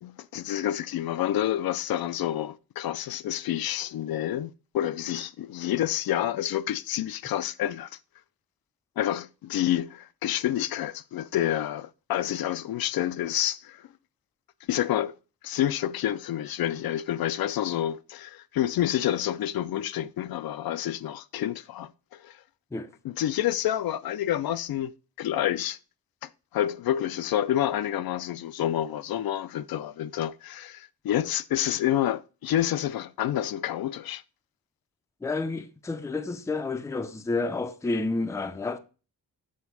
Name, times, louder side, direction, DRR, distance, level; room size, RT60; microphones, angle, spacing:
voice 1, 0.0-7.9 9.0-13.9 14.7-15.1 15.4-22.4 23.0-24.9 25.2-25.8 26.2-34.2, left 12 dB, 65° left, 0.5 m, -28 dB
voice 2, 35.2-38.8, left 3 dB, 10° left, 0.4 m, -30 dB
7.4 x 3.5 x 5.9 m
wide cardioid pair, 155°, 39 cm